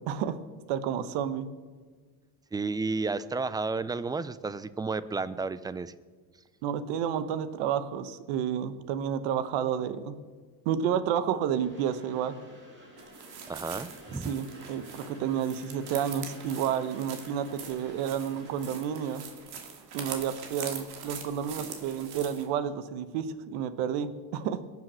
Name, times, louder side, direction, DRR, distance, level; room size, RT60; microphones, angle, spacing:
voice 1, 0.1-0.4 0.7-1.5 6.6-10.2 10.6-12.4 14.3-19.2 19.9-24.6, right 8 dB, 80° right, 13 dB, 1.1 m, -30 dB
voice 2, 2.5-5.9 13.5-14.3, right 4 dB, 10° right, 16 dB, 0.4 m, -32 dB
Train, 11.5-19.2, right 1 dB, 25° right, 4.7 m, -51 dB
sound 1, 13.0-22.5, right 6 dB, 60° right, 2.4 m, -43 dB
22.5 x 7.5 x 6.3 m, 1.5 s
cardioid pair, 120°, 41 cm